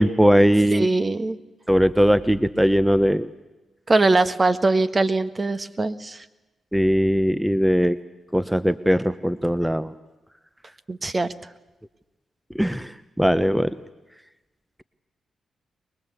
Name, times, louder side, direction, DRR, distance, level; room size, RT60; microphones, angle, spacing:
voice 1, 0.0-0.9 1.7-3.3 6.7-8.0 8.3-9.9 12.6-12.9 13.2-13.8, equal, 5° right, 14 dB, 0.9 m, -19 dB
voice 2, 0.7-1.4 3.9-6.2 10.9-11.3, right 3 dB, 35° right, 11 dB, 1.5 m, -21 dB
23.5 x 21.0 x 8.2 m, 1.1 s
supercardioid pair, 45°, 0 cm